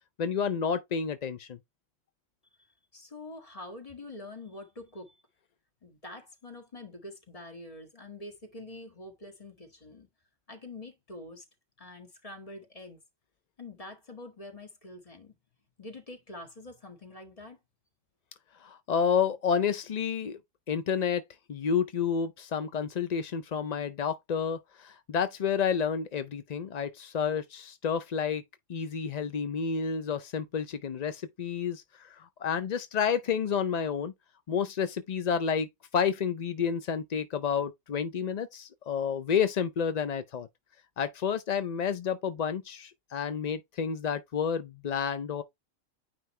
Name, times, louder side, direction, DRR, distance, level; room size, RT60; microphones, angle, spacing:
voice 1, 0.2-1.6 18.6-20.4 20.7-21.2 21.5-28.4 28.7-34.1 34.5-35.7 35.9-40.5 41.0-45.4, left 7 dB, 50° left, 0.5 m, -30 dB
voice 2, 2.9-5.2 5.8-10.1 10.5-11.5 11.8-13.0 13.6-15.3 15.8-17.6, left 2 dB, 30° left, 1.7 m, -45 dB
9.3 x 3.3 x 3.2 m
omnidirectional pair, 1.3 m